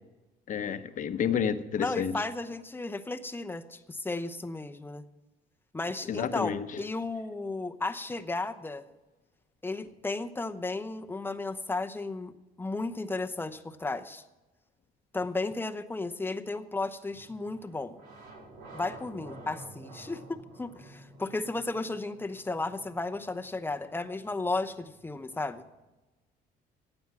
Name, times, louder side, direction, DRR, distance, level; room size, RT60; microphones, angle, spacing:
voice 1, 0.5-2.1 6.1-6.8, left 8 dB, 50° left, 10 dB, 1.0 m, -30 dB
voice 2, 1.8-5.0 5.7-8.8 9.6-12.3 12.6-14.2 15.1-18.0 18.7-25.6, left 3 dB, 10° left, 8 dB, 0.8 m, -34 dB
sound 1, 17.1-25.9, right 2 dB, 90° right, 4.2 m, -51 dB
15.5 x 8.9 x 6.0 m, 1.1 s
cardioid pair, 110°, 17 cm